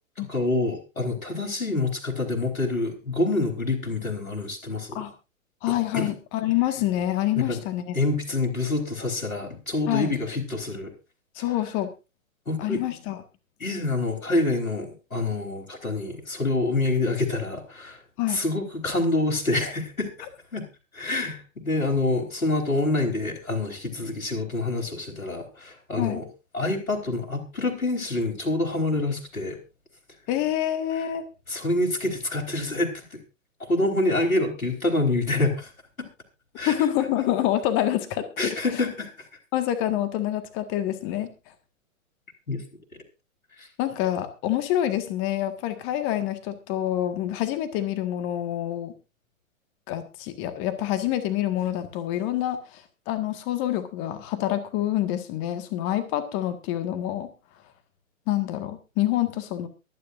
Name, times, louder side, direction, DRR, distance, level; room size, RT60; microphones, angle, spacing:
voice 1, 0.2-5.0 5.9-6.1 7.4-7.6 7.9-10.9 12.5-12.8 13.6-18.0 18.3-20.1 20.5-20.7 20.9-26.3 26.5-29.6 31.5-33.2 33.7-35.7 36.0-36.1 36.6-36.7 38.4-39.3 42.5-42.6 43.6-43.7, left 2 dB, 80° left, 1 dB, 4.0 m, -26 dB
voice 2, 5.6-7.9 9.9-10.1 11.3-11.9 12.6-13.2 18.2-18.4 26.0-26.2 30.3-31.2 36.7-38.6 39.5-41.3 43.8-48.9 49.9-57.3 58.3-59.7, left 12 dB, 30° left, 9 dB, 1.7 m, -27 dB
23.0 x 10.0 x 2.6 m, 0.28 s
figure-of-eight pair, 115°, 41 cm